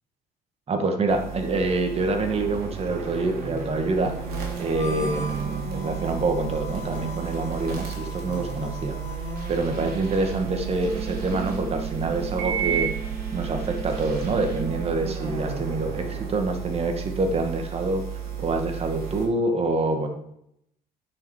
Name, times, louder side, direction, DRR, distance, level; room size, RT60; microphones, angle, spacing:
voice 1, 0.7-4.2 4.6-9.2 9.5-12.9 13.3-18.0 18.4-20.1, right 3 dB, 35° right, 5 dB, 1.9 m, -26 dB
sound 1, 1.1-19.3, right 7 dB, 65° right, 3.3 m, -32 dB
Harmonica, 4.7-10.3, left 3 dB, 15° left, 3.3 m, -41 dB
9.7 x 6.9 x 5.0 m, 0.76 s
cardioid pair, 110°, 17 cm